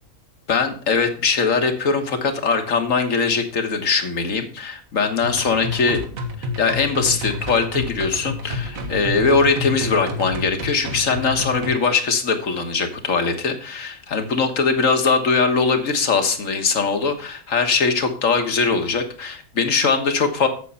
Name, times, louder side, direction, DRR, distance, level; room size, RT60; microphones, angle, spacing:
voice 1, 0.5-6.0 6.4-20.5, left 4 dB, 70° left, 6 dB, 1.7 m, -21 dB
sound 1, 5.2-11.7, left 2 dB, 80° right, 1.8 m, -29 dB
8.3 x 7.5 x 5.5 m, 0.43 s
omnidirectional pair, 1.4 m